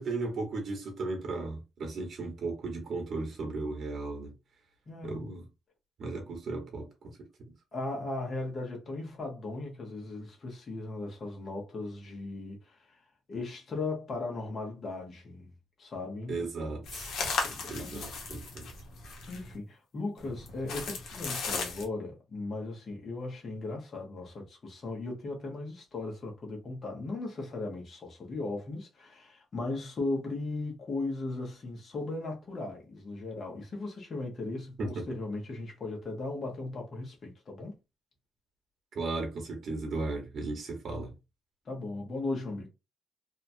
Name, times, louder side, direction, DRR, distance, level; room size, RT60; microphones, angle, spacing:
voice 1, 0.0-4.3 5.0-5.4 6.0-7.1 16.3-17.1 17.7-18.7 34.8-35.1 38.9-41.1, right 3 dB, 50° right, 1.2 m, -35 dB
voice 2, 4.9-5.2 7.7-12.8 13.3-15.5 15.8-16.4 17.4-18.1 19.3-37.7 41.7-42.7, left 2 dB, 40° left, 1.1 m, -37 dB
sound 1, 16.9-19.6 20.2-21.8, left 4 dB, 70° left, 0.9 m, -36 dB
2.8 x 2.3 x 2.7 m
cardioid pair, 135°, 0 cm